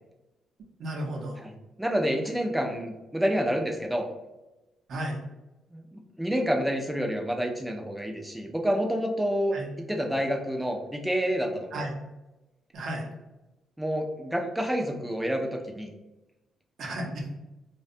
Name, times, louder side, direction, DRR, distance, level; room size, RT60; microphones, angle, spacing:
voice 1, 0.8-1.4 4.9-5.2 9.5-9.7 11.7-11.9 12.7-13.0 16.8-17.2, right 1 dB, 65° right, 0 dB, 0.6 m, -33 dB
voice 2, 1.4-4.1 5.7-11.8 13.8-15.9, equal, 5° right, 2 dB, 0.4 m, -28 dB
2.5 x 2.2 x 2.5 m, 1.0 s
cardioid pair, 90°, 0 cm